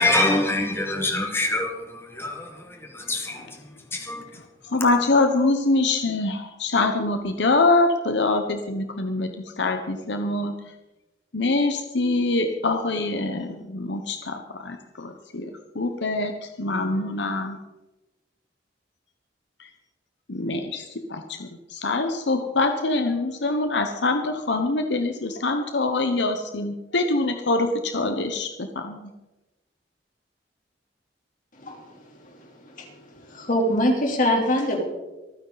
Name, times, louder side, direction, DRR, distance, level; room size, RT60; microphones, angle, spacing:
voice 1, 0.0-2.5 2.9-3.4 3.9-4.2, left 2 dB, 15° left, 1.6 m, -24 dB
voice 2, 4.7-9.3 9.6-10.5 11.3-15.5 15.7-16.3 16.6-17.6 20.3-20.8 21.1-29.1, left 2 dB, 75° left, 1.0 m, -24 dB
voice 3, 31.5-34.8, left 1 dB, 50° left, 3.5 m, -25 dB
25.5 x 9.5 x 4.1 m
head